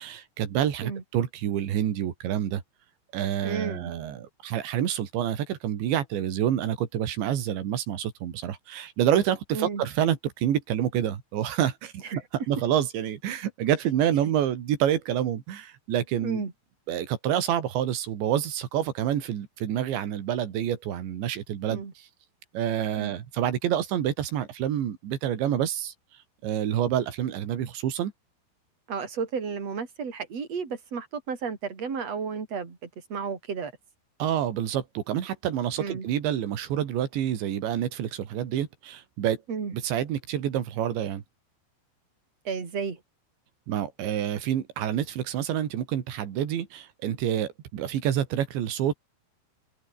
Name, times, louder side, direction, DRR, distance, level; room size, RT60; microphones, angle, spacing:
voice 1, 0.0-2.6 3.1-11.9 12.5-16.4 16.9-22.1 22.5-25.9 26.4-28.1 34.2-39.4 39.7-41.2 43.7-48.9, right 10 dB, 65° right, 4.6 m, -28 dB
voice 2, 3.4-3.9 9.5-9.8 12.0-12.2 16.2-16.5 21.7-21.9 23.0-23.2 28.9-33.7 35.8-36.1 39.5-39.7 42.4-43.0, right 5 dB, 35° right, 4.8 m, -32 dB
omnidirectional pair, 5.9 m